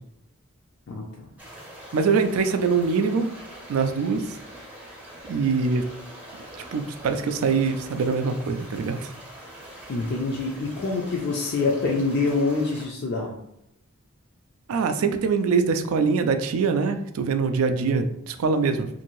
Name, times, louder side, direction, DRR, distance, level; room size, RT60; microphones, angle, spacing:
sound 1, 1.4-12.9, right 1 dB, 5° right, 0.5 m, -44 dB
voice 1, 1.9-3.3 3.7-4.4 5.3-5.9 6.7-9.1 14.7-18.9, right 5 dB, 75° right, 8 dB, 0.3 m, -23 dB
voice 2, 9.9-13.3, left 3 dB, 50° left, -2 dB, 0.4 m, -25 dB
2.6 x 2.6 x 3.0 m, 0.81 s
head